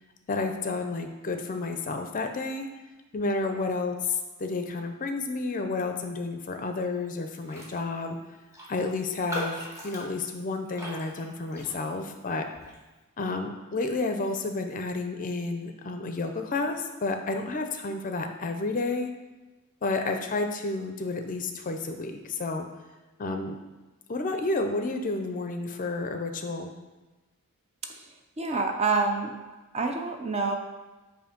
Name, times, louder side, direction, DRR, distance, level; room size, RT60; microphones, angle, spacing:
voice 1, 0.3-2.7 3.1-8.2 8.7-12.5 13.2-19.1 19.8-22.7 23.2-23.6 24.1-26.7, left 3 dB, 35° left, 5 dB, 0.5 m, -31 dB
Raindrop, 7.4-7.8 8.1-8.2 8.5-12.1 12.5-12.8, equal, 15° right, 1.0 m, -39 dB
voice 2, 28.4-29.3 29.7-30.5, right 3 dB, 30° right, 3 dB, 0.5 m, -27 dB
7.6 x 2.6 x 5.1 m, 1.2 s
head